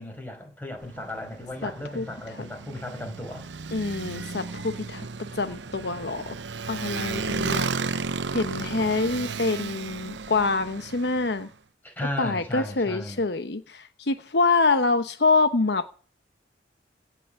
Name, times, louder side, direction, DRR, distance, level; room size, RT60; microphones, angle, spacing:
voice 1, 0.0-3.5 11.8-13.2, left 1 dB, 10° left, 5.4 m, -35 dB
Motorcycle, 0.8-11.5, right 4 dB, 80° right, 0.8 m, -34 dB
voice 2, 1.6-2.0 3.7-5.1 5.3-6.4 6.7-7.7 8.3-11.5 12.2-15.9, left 3 dB, 70° left, 1.0 m, -26 dB
17.0 x 6.2 x 8.8 m
head